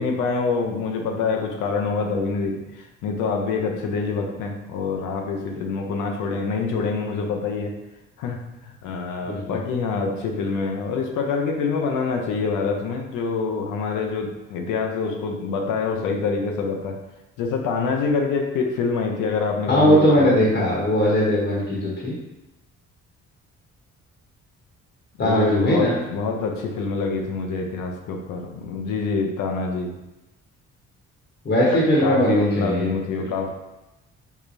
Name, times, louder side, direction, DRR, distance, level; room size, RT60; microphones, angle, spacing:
voice 1, 0.0-7.7 8.2-17.0 17.4-20.5 25.2-29.9 31.7-33.5, left 4 dB, 90° left, 2 dB, 0.5 m, -26 dB
voice 2, 9.2-9.6 19.7-22.1 25.2-25.9 31.4-32.9, equal, 35° left, -5 dB, 0.9 m, -19 dB
4.8 x 2.1 x 2.6 m, 0.96 s
cardioid pair, 90°, 30 cm